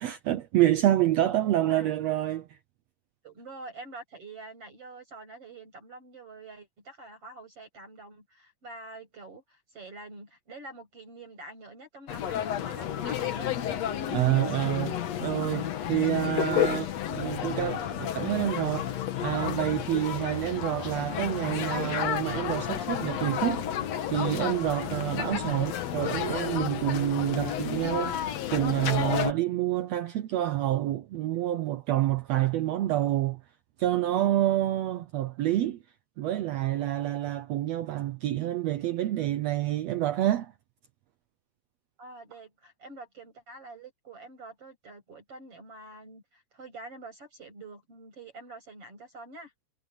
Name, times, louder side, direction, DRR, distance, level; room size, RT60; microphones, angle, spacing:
voice 1, 0.0-2.6 14.1-18.9 19.2-23.7 24.1-28.2 28.5-33.4 33.8-35.8 36.2-40.5, right 13 dB, 85° right, 1.4 m, -28 dB
voice 2, 3.2-13.5 42.0-49.5, right 2 dB, 40° right, 7.9 m, -46 dB
sound 1, 12.1-29.3, left 10 dB, 60° left, 2.1 m, -31 dB
omnidirectional pair, 4.0 m